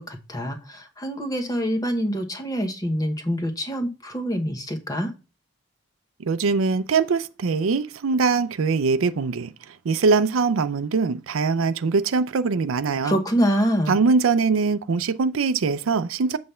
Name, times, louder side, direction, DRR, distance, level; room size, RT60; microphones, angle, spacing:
voice 1, 0.0-5.1 13.0-14.0, equal, 20° left, 1.0 m, -25 dB
voice 2, 6.2-9.5 9.8-13.2 13.9-16.4, right 4 dB, 90° right, 0.5 m, -22 dB
7.6 x 3.4 x 5.5 m
head